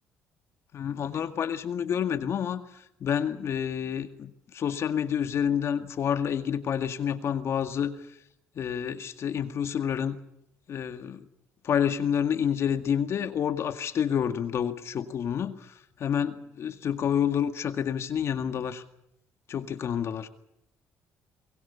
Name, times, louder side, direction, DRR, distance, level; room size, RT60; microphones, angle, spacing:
voice 1, 0.7-7.9 8.6-10.2 10.7-11.3 11.6-18.8 19.5-20.3, left 8 dB, 55° left, 9 dB, 2.0 m, -29 dB
23.0 x 21.5 x 7.1 m, 0.78 s
cardioid pair, 110°, 6 cm